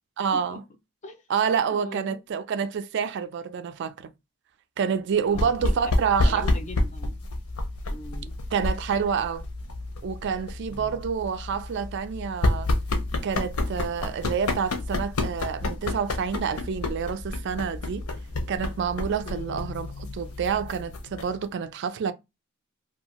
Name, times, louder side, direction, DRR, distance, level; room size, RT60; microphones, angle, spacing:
voice 1, 0.2-0.6 1.3-4.1 4.8-6.5 8.5-9.4 10.0-12.7 13.2-18.0 18.5-22.1, right 6 dB, 55° right, 0.3 m, -28 dB
voice 2, 1.7-2.2 5.2-5.5 6.0-7.2 7.9-8.3 10.7-11.0 19.3-19.7, left 1 dB, 30° left, 0.4 m, -40 dB
sound 1, 5.3-21.5, left 2 dB, 85° left, 0.6 m, -29 dB
2.6 x 2.3 x 2.9 m
head